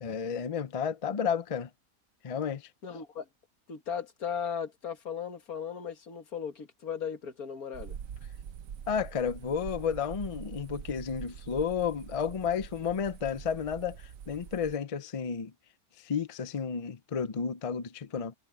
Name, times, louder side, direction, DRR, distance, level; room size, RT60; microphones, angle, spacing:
voice 1, 0.0-1.7 2.2-2.6 8.9-14.0 14.3-15.5 16.0-18.3, left 7 dB, 40° left, 0.4 m, -32 dB
voice 2, 2.8-3.3 3.7-8.0, left 7 dB, 80° left, 2.1 m, -37 dB
sound 1, 7.7-14.8, right 8 dB, 70° right, 1.2 m, -44 dB
omnidirectional pair, 1.5 m